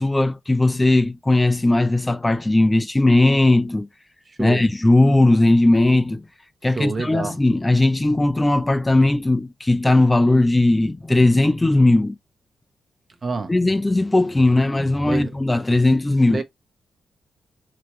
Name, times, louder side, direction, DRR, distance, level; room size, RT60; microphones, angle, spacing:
voice 1, 0.0-3.9 4.4-6.2 6.6-12.1 13.5-16.4, left 2 dB, 20° left, 0.5 m, -18 dB
voice 2, 4.3-4.7 6.7-7.4 13.2-13.5 15.0-15.3 16.3-16.4, right 4 dB, 40° right, 0.9 m, -27 dB
4.3 x 3.0 x 3.1 m
cardioid pair, 60°, 0 cm